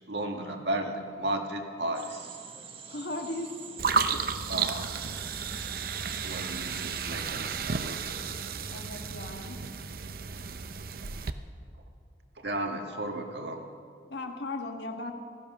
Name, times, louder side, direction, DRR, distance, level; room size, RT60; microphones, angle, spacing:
voice 1, 0.0-2.4 4.1-4.2 4.5-4.9 6.2-8.2 12.4-13.6, right 1 dB, 75° right, 3 dB, 1.6 m, -34 dB
sound 1, 1.9-7.1, right 6 dB, 30° right, 1.1 m, -45 dB
voice 2, 2.9-3.5 8.7-9.6 14.0-15.1, left 2 dB, 75° left, 4 dB, 1.6 m, -37 dB
sound 2, 3.8-11.3, right 5 dB, 55° right, 0.6 m, -33 dB
15.5 x 14.0 x 6.0 m, 2.1 s
head